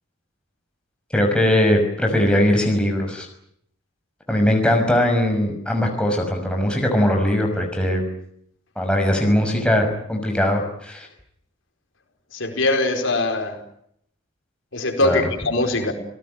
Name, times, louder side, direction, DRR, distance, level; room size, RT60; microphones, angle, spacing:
voice 1, 1.1-3.3 4.3-8.0 8.8-11.1 15.0-15.3, left 1 dB, 5° left, 2 dB, 6.1 m, -20 dB
voice 2, 12.3-13.6 14.7-15.9, left 2 dB, 65° left, 4 dB, 4.8 m, -22 dB
28.5 x 18.5 x 9.5 m, 0.72 s
head